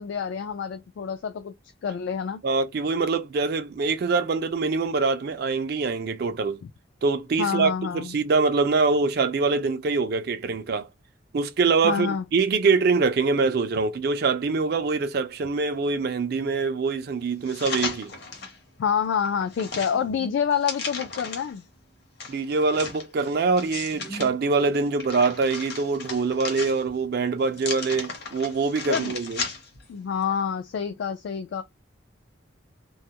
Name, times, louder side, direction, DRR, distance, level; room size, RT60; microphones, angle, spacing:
voice 1, 0.0-1.5 1.8-2.4 7.4-8.2 11.8-12.3 18.8-21.6 28.9-29.1 29.9-31.6, left 7 dB, 70° left, 0.3 m, -27 dB
voice 2, 2.4-6.6 7.0-10.9 11.3-18.1 22.3-29.4, right 4 dB, 50° right, 0.4 m, -24 dB
sound 1, 17.4-18.6 19.0-21.6 22.2-24.3 24.7-27.1 27.5-29.8 30.2-30.3, left 4 dB, 55° left, 0.7 m, -35 dB
2.3 x 2.0 x 2.8 m
head